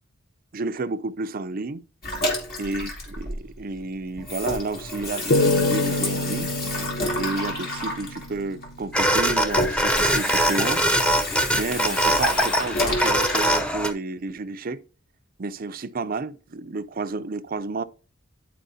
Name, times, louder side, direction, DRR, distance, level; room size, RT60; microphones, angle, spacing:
voice 1, 0.5-1.8 2.6-6.5 7.2-10.8 11.5-14.8 15.4-17.8, right 3 dB, 45° right, 0.5 m, -31 dB
Water tap faucet / Sink (filling or washing), 2.0-3.8 4.1-13.6, left 1 dB, 50° left, 2.6 m, -30 dB
sound 1, 5.3-8.7, left 2 dB, 70° left, 0.8 m, -26 dB
sound 2, 8.9-13.9, right 1 dB, 5° left, 0.6 m, -22 dB
11.0 x 4.5 x 2.7 m
head